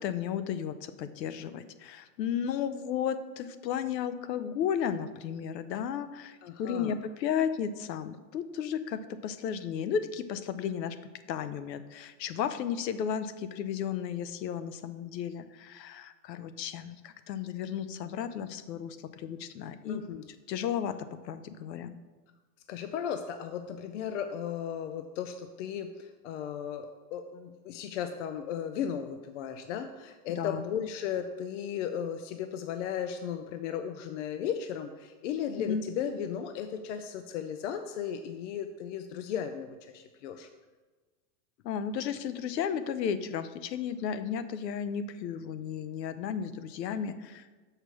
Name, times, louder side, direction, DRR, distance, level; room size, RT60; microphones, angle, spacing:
voice 1, 0.0-11.0 11.3-20.0 20.5-21.9 30.4-30.6 35.6-35.8 41.6-47.6, left 8 dB, 90° left, 12 dB, 0.8 m, -34 dB
voice 2, 6.4-7.0 19.9-20.2 22.7-40.5, left 8 dB, 50° left, 8 dB, 0.5 m, -35 dB
6.6 x 4.9 x 6.2 m, 1.3 s
supercardioid pair, 155°, 49 cm